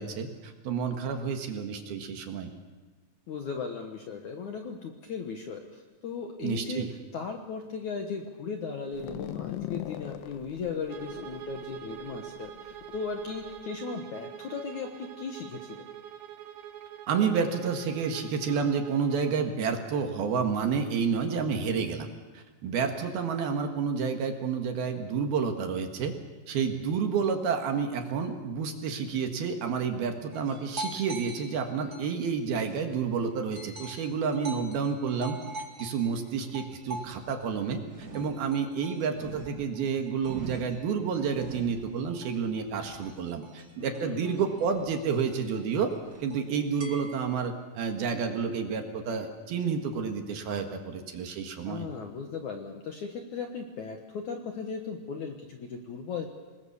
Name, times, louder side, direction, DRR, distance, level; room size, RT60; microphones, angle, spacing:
voice 1, 0.0-2.5 6.4-6.9 17.1-22.1 22.3-26.1 26.5-35.4 35.8-45.9 46.2-51.9, right 6 dB, 65° right, 5 dB, 3.3 m, -30 dB
voice 2, 3.3-6.9 7.1-15.9 43.8-44.5 51.7-56.3, left 5 dB, 60° left, 3 dB, 2.1 m, -37 dB
sound 1, 8.9-13.6, left 12 dB, 75° left, 2.9 m, -40 dB
Bowed string instrument, 10.9-19.4, right 10 dB, 90° right, 1.6 m, -44 dB
sound 2, 30.3-33.0 33.5-47.2, right 3 dB, 50° right, 1.1 m, -43 dB
27.0 x 20.5 x 7.0 m, 1.3 s
omnidirectional pair, 5.1 m